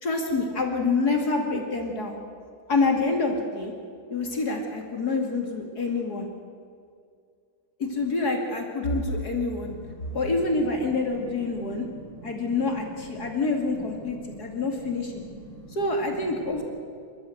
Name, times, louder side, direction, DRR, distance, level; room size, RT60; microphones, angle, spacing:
voice 1, 0.0-2.2 2.7-3.7 4.1-6.3 7.8-9.7 10.1-11.9 12.2-15.2 15.7-16.6, left 3 dB, 45° left, 2 dB, 2.8 m, -27 dB
voice 2, 9.6-10.2 11.7-12.5 13.1-13.3 14.1-14.4 15.1-15.7, equal, 70° right, -4 dB, 8.3 m, -44 dB
27.5 x 14.0 x 7.9 m, 2.2 s
omnidirectional pair, 2.4 m